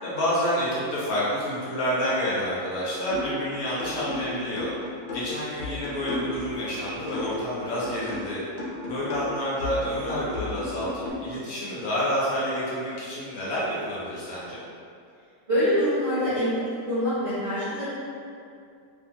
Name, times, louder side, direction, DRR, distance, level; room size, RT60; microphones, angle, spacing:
voice 1, 0.0-4.7 5.1-8.4 8.9-14.6, equal, 65° left, -8 dB, 1.1 m, -28 dB
sound 1, 3.1-3.4 3.8-7.5 7.8-11.1, left 3 dB, 80° left, 1.3 m, -34 dB
voice 2, 15.5-16.5 16.9-17.9, equal, 45° right, -15 dB, 0.4 m, -24 dB
2.7 x 2.4 x 2.8 m, 2.4 s
omnidirectional pair, 1.9 m